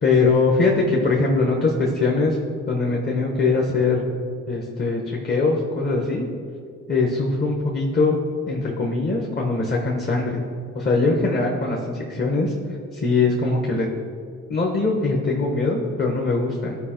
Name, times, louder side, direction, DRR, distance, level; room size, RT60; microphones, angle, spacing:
voice 1, 0.0-2.4 2.7-4.0 4.5-6.3 6.9-8.2 8.5-10.4 10.7-12.5 12.9-13.9 14.5-16.8, left 3 dB, 35° left, -1 dB, 1.2 m, -21 dB
14.0 x 4.8 x 4.5 m, 2.3 s
cardioid pair, 90°, 30 cm